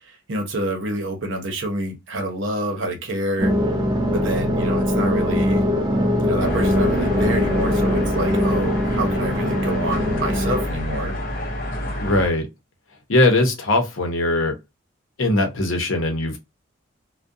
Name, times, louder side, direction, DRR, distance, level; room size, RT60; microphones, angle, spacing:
voice 1, 0.1-3.5 4.1-5.7 6.2-11.1, right 1 dB, 70° right, 0.7 m, -27 dB
sound 1, 3.4-10.7, left 1 dB, 20° right, 0.4 m, -21 dB
sound 2, 6.4-12.3, left 1 dB, 45° left, 0.6 m, -29 dB
voice 2, 12.0-12.5 13.1-14.6 15.2-16.4, left 2 dB, 75° left, 0.7 m, -20 dB
2.3 x 2.1 x 2.6 m
head